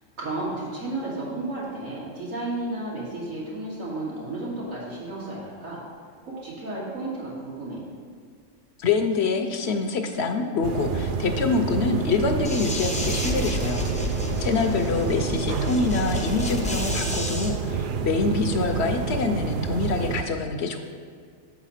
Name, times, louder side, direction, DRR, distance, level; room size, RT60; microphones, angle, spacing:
voice 1, 0.2-5.8 6.2-7.8 14.4-15.4, right 2 dB, 85° right, -7 dB, 2.8 m, -33 dB
voice 2, 8.8-20.8, left 4 dB, 65° left, 6 dB, 0.8 m, -26 dB
sound 1, 10.6-20.2, right 5 dB, 65° right, 0.5 m, -28 dB
sound 2, 12.4-17.5, left 2 dB, 10° left, 0.3 m, -32 dB
7.7 x 4.9 x 5.6 m, 2.1 s
omnidirectional pair, 1.3 m